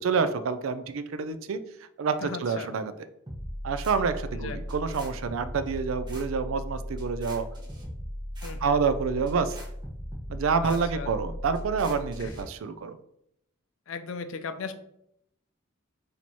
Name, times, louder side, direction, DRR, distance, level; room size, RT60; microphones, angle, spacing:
voice 1, 0.0-1.6 2.0-2.9 3.6-7.5 8.6-9.6 10.3-13.0, right 5 dB, 75° right, 11 dB, 0.4 m, -28 dB
voice 2, 2.2-2.7 4.3-4.6 8.4-8.8 10.6-11.1 12.2-12.3 13.9-14.7, left 5 dB, 70° left, 9 dB, 0.5 m, -37 dB
sound 1, 3.3-12.4, equal, 20° right, 0.9 m, -37 dB
4.5 x 2.8 x 4.2 m, 0.74 s
head